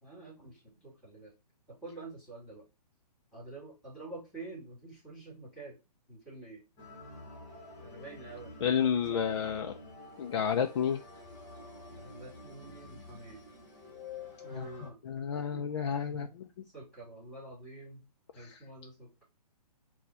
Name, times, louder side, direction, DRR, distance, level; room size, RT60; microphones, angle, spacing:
voice 1, 0.0-1.3 1.7-2.7 3.3-5.8 6.1-6.6 7.8-9.2 11.9-13.4 14.4-16.3 16.7-18.0 18.3-19.2, right 2 dB, 5° left, -4 dB, 2.3 m, -48 dB
sound 1, 6.8-14.9, left 3 dB, 20° left, 1.1 m, -49 dB
voice 2, 8.6-9.7 10.2-11.0 14.5-14.7 15.1-16.5 18.4-18.5, left 7 dB, 45° left, 4 dB, 0.4 m, -30 dB
4.1 x 2.2 x 4.3 m, 0.25 s
hypercardioid pair, 155°, 21 cm